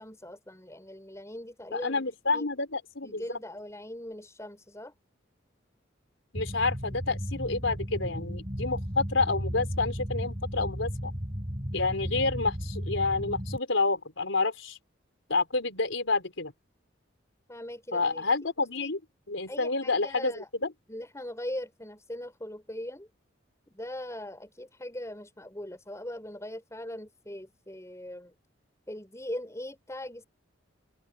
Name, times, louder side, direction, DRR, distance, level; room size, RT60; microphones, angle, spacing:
voice 1, 0.0-2.1 2.3-2.5 3.0-4.9 17.5-18.3 18.8-18.9 19.5-20.5 20.9-23.1 23.7-28.3 28.9-30.2, left 1 dB, 15° left, 5.7 m, -40 dB
voice 2, 1.7-3.4 6.3-11.1 11.7-14.8 15.3-16.5 17.9-19.0 19.3-20.3, left 3 dB, 80° left, 4.2 m, -29 dB
sound 1, 6.3-13.6, equal, 25° right, 3.1 m, -34 dB
head